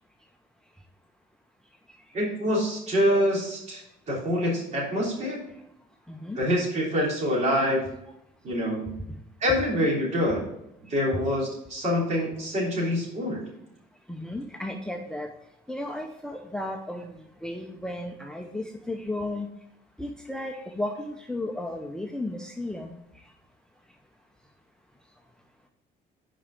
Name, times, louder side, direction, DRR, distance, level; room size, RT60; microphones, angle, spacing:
voice 1, 2.1-5.4 6.3-7.8 8.4-8.9 9.4-10.5 10.9-13.4, equal, 45° right, -3 dB, 3.2 m, -26 dB
voice 2, 6.1-6.4 14.1-15.3 15.7-19.5 20.0-23.0, left 1 dB, 5° left, 3 dB, 0.6 m, -34 dB
5.4 x 5.0 x 6.5 m, 0.81 s
cardioid pair, 110°, 17 cm